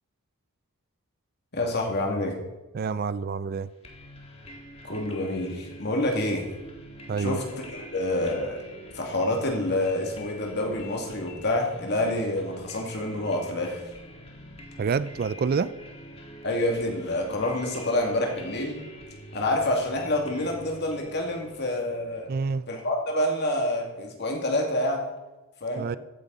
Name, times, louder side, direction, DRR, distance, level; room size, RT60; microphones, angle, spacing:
voice 1, 1.5-2.4 4.8-6.4 7.2-7.4 7.7-8.6 8.9-13.8 16.4-18.8 19.3-22.3 22.7-25.0 25.6-25.9, left 1 dB, 50° left, 1 dB, 2.4 m, -27 dB
voice 2, 2.7-3.7 7.1-7.4 14.8-15.7 22.3-22.6 25.8-26.0, right 5 dB, 45° right, 16 dB, 0.4 m, -27 dB
sound 1, 3.8-22.5, equal, 30° left, 1.7 m, -45 dB
14.5 x 9.2 x 4.1 m, 1.1 s
head